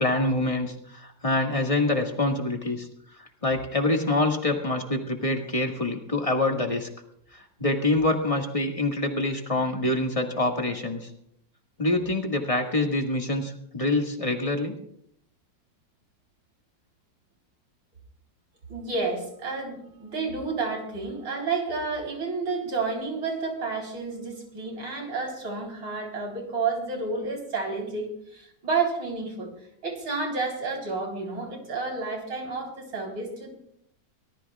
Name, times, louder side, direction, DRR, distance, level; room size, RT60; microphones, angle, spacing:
voice 1, 0.0-2.9 3.2-6.9 7.3-11.1 11.8-14.8, left 2 dB, 20° left, 2 dB, 1.7 m, -26 dB
voice 2, 18.7-29.5 29.8-33.5, right 4 dB, 85° right, 1 dB, 4.6 m, -30 dB
24.5 x 18.5 x 2.4 m, 0.70 s
omnidirectional pair, 2.0 m